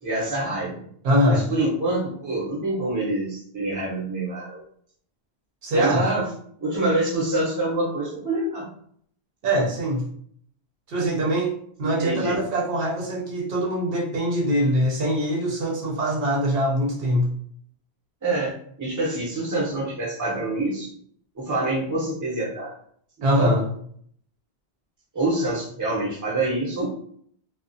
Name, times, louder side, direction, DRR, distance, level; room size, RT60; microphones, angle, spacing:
voice 1, 0.0-0.8 1.3-4.6 5.7-6.3 6.6-8.7 11.8-12.4 18.2-20.9 21.4-22.7 23.3-23.6 25.1-26.9, right 2 dB, 20° right, -4 dB, 0.6 m, -26 dB
voice 2, 1.0-1.5 5.6-6.0 9.4-10.0 10.9-17.3 23.2-23.7, equal, 70° right, -2 dB, 0.7 m, -23 dB
2.3 x 2.1 x 2.6 m, 0.62 s
omnidirectional pair, 1.0 m